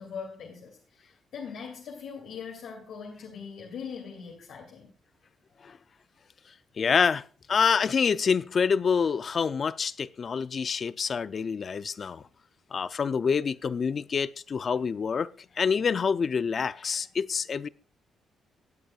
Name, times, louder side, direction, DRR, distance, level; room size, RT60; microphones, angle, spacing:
voice 1, 0.0-4.9, left 6 dB, 80° left, 2.6 m, -41 dB
voice 2, 6.8-7.2 7.5-12.2 12.7-15.3 15.6-17.7, left 6 dB, 40° left, 0.5 m, -26 dB
18.5 x 8.3 x 2.4 m
cardioid pair, 125°, 0 cm